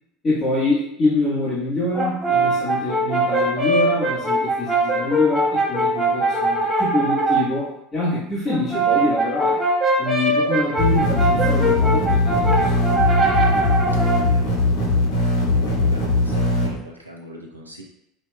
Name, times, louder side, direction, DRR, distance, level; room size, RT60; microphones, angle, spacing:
voice 1, 0.2-9.6 10.0-12.7, left 2 dB, 25° left, -9 dB, 1.3 m, -25 dB
Brass instrument, 1.9-7.5 8.5-14.3, right 2 dB, 20° right, 1.1 m, -21 dB
sound 1, 10.8-16.7, left 2 dB, 65° left, 1.1 m, -20 dB
voice 2, 15.5-17.8, right 1 dB, 85° right, 0 dB, 0.6 m, -40 dB
5.2 x 2.9 x 2.2 m, 0.79 s
figure-of-eight pair, 70°, 0 cm